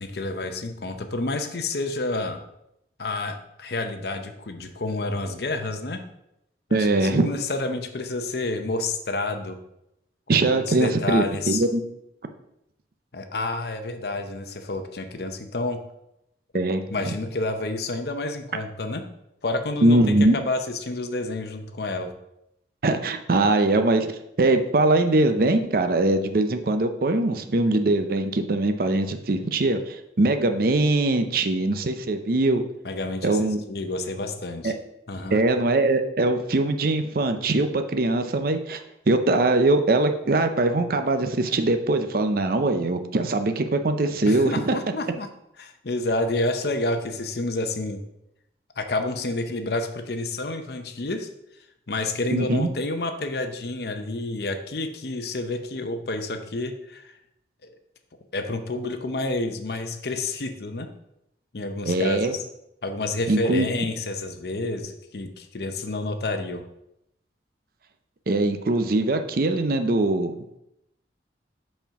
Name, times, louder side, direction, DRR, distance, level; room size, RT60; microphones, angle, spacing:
voice 1, 0.0-2.4 3.0-6.0 6.7-9.6 10.5-11.6 13.1-15.8 16.9-19.1 19.4-22.1 32.8-34.7 35.1-35.4 44.2-45.3 45.6-48.0 48.8-51.3 51.9-57.1 57.6-57.7 58.3-60.9 61.5-62.4 62.8-66.6, left 2 dB, 55° left, 7 dB, 0.7 m, -29 dB
voice 2, 6.7-7.3 10.3-11.8 16.5-16.8 19.8-20.4 22.8-32.6 33.2-33.6 34.6-34.7 35.3-38.8 39.1-44.7 52.3-52.7 61.8-62.3 63.3-63.7 68.3-70.3, right 2 dB, 50° right, 7 dB, 0.5 m, -22 dB
5.8 x 4.4 x 5.7 m, 0.82 s
head